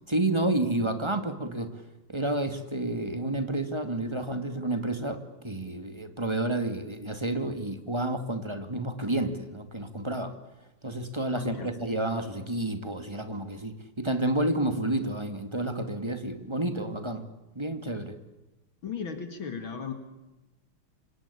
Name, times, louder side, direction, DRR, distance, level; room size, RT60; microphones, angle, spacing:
voice 1, 0.1-1.7 2.1-10.3 10.8-17.2 17.6-18.1, right 1 dB, 15° right, 8 dB, 2.1 m, -30 dB
voice 2, 11.3-11.7 18.8-19.9, left 6 dB, 65° left, 7 dB, 2.8 m, -36 dB
27.5 x 25.0 x 8.6 m, 1.0 s
omnidirectional pair, 2.4 m